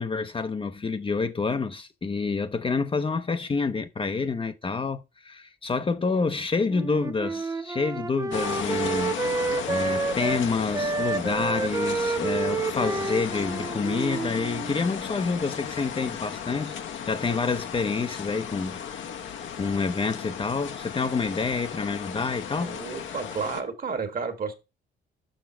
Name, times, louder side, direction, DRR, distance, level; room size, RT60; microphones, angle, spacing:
voice 1, 0.0-9.2 9.7-16.8 17.0-18.9 19.6-22.8, left 4 dB, 25° left, 0.6 m, -28 dB
Wind instrument woodwind instrument, 6.7-10.4 10.7-14.8, right 4 dB, 15° right, 0.4 m, -29 dB
sound 1, 8.3-23.6, left 8 dB, 70° left, 1.0 m, -35 dB
voice 2, 22.6-24.5, right 5 dB, 45° right, 1.7 m, -32 dB
6.5 x 5.7 x 4.3 m
cardioid pair, 90°, 20 cm